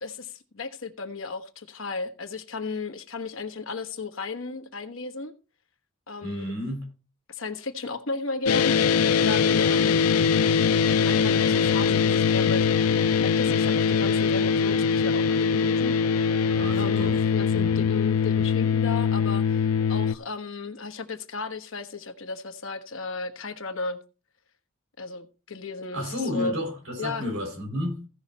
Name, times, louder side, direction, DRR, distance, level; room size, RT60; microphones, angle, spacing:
voice 1, 0.0-5.3 6.1-6.5 7.3-8.9 9.2-10.1 11.0-12.8 13.2-15.9 16.7-19.6 19.9-24.0 25.0-26.0 26.3-26.6 27.0-27.2, left 3 dB, 65° left, 1.2 m, -34 dB
voice 2, 6.2-6.9 16.5-17.2 17.5-17.9 18.4-18.5 25.9-28.1, left 1 dB, 65° right, 5.9 m, -32 dB
sound 1, 8.5-20.1, left 6 dB, 85° left, 0.5 m, -22 dB
16.0 x 5.6 x 4.2 m
head